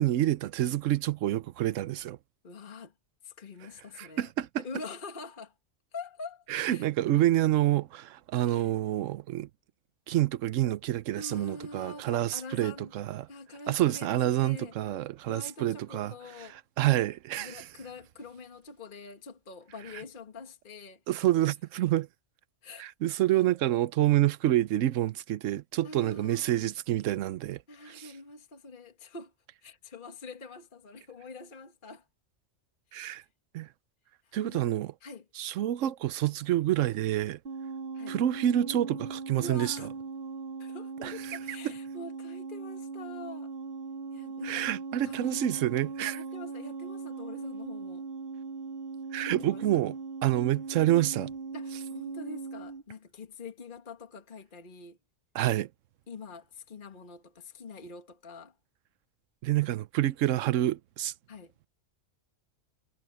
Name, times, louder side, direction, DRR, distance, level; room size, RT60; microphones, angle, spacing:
voice 1, 0.0-2.2 4.0-4.5 6.5-9.5 10.1-13.3 13.7-16.1 16.4-16.5 16.8-17.6 21.1-22.1 22.8-27.6 27.9-28.1 32.9-33.2 33.5-33.7 34.3-34.9 35.4-37.4 38.1-39.8 41.0-41.4 44.4-46.2 49.1-50.0 50.2-51.3 55.3-55.7 59.4-61.1, right 13 dB, 80° right, 1.0 m, -28 dB
voice 2, 2.4-2.9 3.2-4.3 4.6-5.5 5.9-6.9 8.5-8.8 11.1-12.9 13.3-14.7 15.2-16.6 17.4-21.0 22.6-22.9 25.8-26.7 27.7-29.3 29.6-32.1 32.9-33.2 34.2-34.7 35.0-35.2 37.9-38.2 39.3-39.9 40.6-43.5 44.1-44.7 45.0-45.4 46.1-48.1 49.2-49.6 51.5-55.0 56.1-58.6 61.3-61.5, left 3 dB, 40° left, 1.7 m, -45 dB
sound 1, 37.5-52.8, right 4 dB, 50° right, 3.0 m, -39 dB
omnidirectional pair, 1.3 m